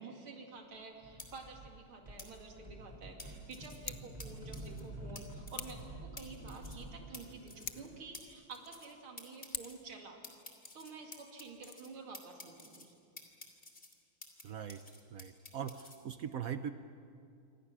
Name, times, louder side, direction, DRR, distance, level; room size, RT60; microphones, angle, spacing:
voice 1, 0.0-10.2 10.7-12.9, right 4 dB, 85° right, 2 dB, 3.4 m, -50 dB
sound 1, 1.0-1.7 2.0-8.1, right 1 dB, 20° right, 3.8 m, -49 dB
sound 2, 1.2-1.3 2.2-2.3 3.2-3.8 4.2-4.3 4.5-4.8 5.2-5.3 5.5-5.8 6.2-6.3 6.5-6.8 7.1-7.2 7.5-7.8 8.1-8.2 8.5-8.9 9.2-9.8 10.2-11.9 12.1-12.9 13.2-14.4 14.7-16.0, left 2 dB, 25° left, 3.0 m, -51 dB
Scissors, 3.7-4.1 5.5-5.9 7.5-8.0 9.5-9.9 11.5-11.7, left 7 dB, 75° left, 0.5 m, -44 dB
voice 2, 14.4-14.9 15.1-16.7, right 8 dB, 65° right, 10 dB, 0.9 m, -41 dB
27.5 x 25.0 x 6.2 m, 2.4 s
omnidirectional pair, 2.2 m